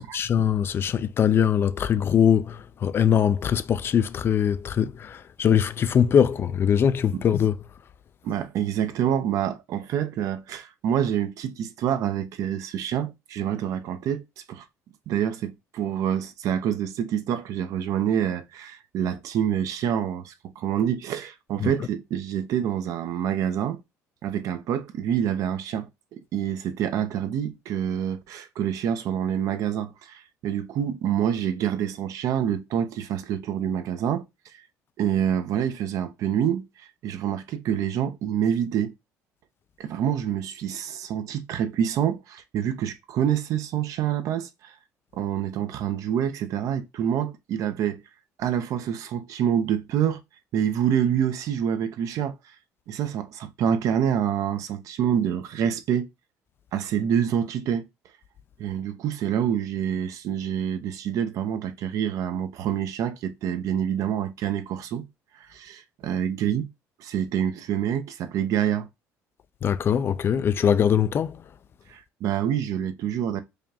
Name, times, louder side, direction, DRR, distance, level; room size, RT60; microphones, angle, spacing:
voice 1, 0.0-7.6 21.6-21.9 69.6-71.4, left 8 dB, 40° left, 0.3 m, -22 dB
voice 2, 8.2-14.6 15.1-23.8 24.2-34.2 35.0-38.9 39.8-44.7 45.1-48.0 48.4-50.2 50.5-52.3 52.9-56.1 56.7-57.9 58.6-65.1 65.4-66.7 67.0-68.9 71.9-73.4, right 9 dB, 65° right, 0.7 m, -27 dB
4.9 x 2.5 x 2.7 m
cardioid pair, 115°, 6 cm